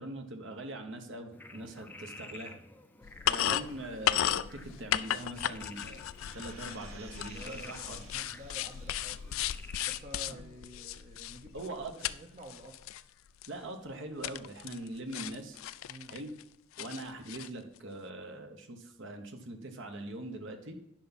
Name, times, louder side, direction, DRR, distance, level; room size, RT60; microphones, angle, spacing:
voice 1, 0.0-2.6 3.2-8.0 10.3-10.5 11.5-11.9 13.5-15.6 16.1-16.3 16.8-20.8, right 1 dB, 60° right, 5 dB, 1.1 m, -42 dB
Frog, 1.3-10.0, left 2 dB, 10° left, 0.6 m, -50 dB
sound 1, 3.0-12.2 12.4-13.0 13.4-13.5 14.2-14.9 15.1-16.4 16.8-17.5, left 11 dB, 70° left, 0.4 m, -35 dB
sound 2, 6.1-9.5 10.0-10.1, right 6 dB, 85° right, 1.1 m, -55 dB
voice 2, 7.3-9.4 9.9-12.9 15.9-16.2, right 1 dB, 30° right, 2 dB, 0.8 m, -50 dB
10.5 x 5.9 x 4.2 m, 0.81 s
head